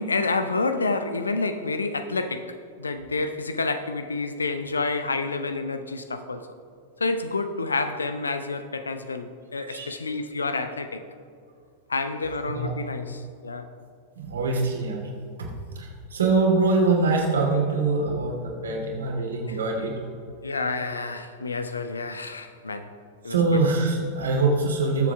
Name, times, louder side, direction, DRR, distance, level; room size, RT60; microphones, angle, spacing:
voice 1, 0.0-6.5 7.0-11.0 11.9-13.7 19.5-19.6 20.4-22.9 23.2-23.6, left 3 dB, 75° left, 10 dB, 0.7 m, -29 dB
voice 2, 9.6-9.9 12.5-12.7 14.2-15.0 15.8-19.9 23.3-25.1, right 3 dB, 70° right, -1 dB, 2.6 m, -24 dB
20.5 x 7.4 x 3.5 m, 2.3 s
figure-of-eight pair, 90°, 0 cm